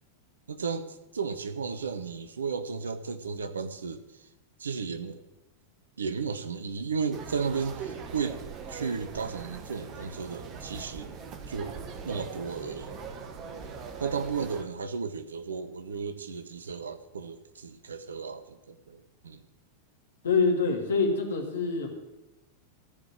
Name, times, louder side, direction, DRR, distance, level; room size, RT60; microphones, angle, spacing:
voice 1, 0.5-4.3 4.6-5.2 6.0-8.4 8.7-11.1 11.5-11.8 12.0-12.9 14.0-19.4, right 5 dB, 70° right, 10 dB, 0.9 m, -34 dB
sound 1, 7.1-14.6, right 5 dB, 35° right, 1.4 m, -41 dB
voice 2, 20.2-21.9, left 4 dB, 65° left, 3 dB, 2.3 m, -25 dB
14.0 x 5.1 x 9.0 m, 0.98 s
figure-of-eight pair, 90°, 0 cm